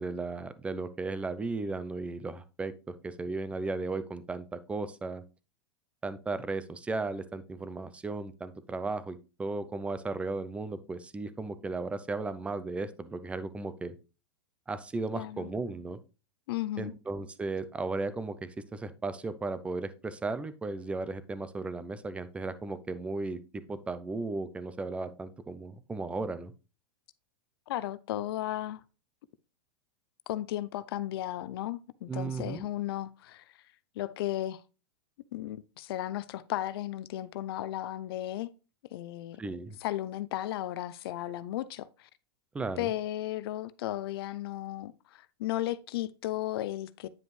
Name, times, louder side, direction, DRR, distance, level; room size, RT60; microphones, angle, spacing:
voice 1, 0.0-5.2 6.0-13.9 14.7-16.0 16.8-23.4 23.7-26.5 32.1-32.7 39.4-39.8 42.5-42.9, right 3 dB, 10° right, 0.5 m, -35 dB
voice 2, 15.1-15.5 16.5-16.9 27.7-28.8 30.3-33.4 34.0-34.6 35.3-38.5 38.9-39.4 39.8-42.1 42.8-47.1, left 14 dB, 65° left, 0.5 m, -35 dB
9.5 x 5.1 x 3.2 m
supercardioid pair, 140°, 14 cm